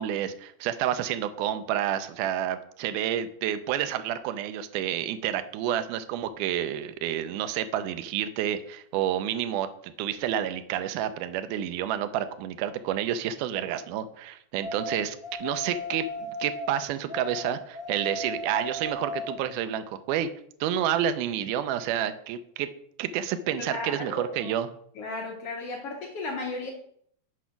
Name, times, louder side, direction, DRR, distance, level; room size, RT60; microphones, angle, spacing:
voice 1, 0.0-16.0 16.4-20.3 20.6-22.7 23.0-24.7, right 10 dB, 80° right, 10 dB, 2.1 m, -29 dB
sound 1, 14.6-16.7 17.1-19.4, left 2 dB, 50° left, 0.7 m, -36 dB
voice 2, 23.6-24.6 25.0-26.7, left 2 dB, 70° left, 1 dB, 1.4 m, -35 dB
6.3 x 5.0 x 5.7 m, 0.67 s
omnidirectional pair, 3.7 m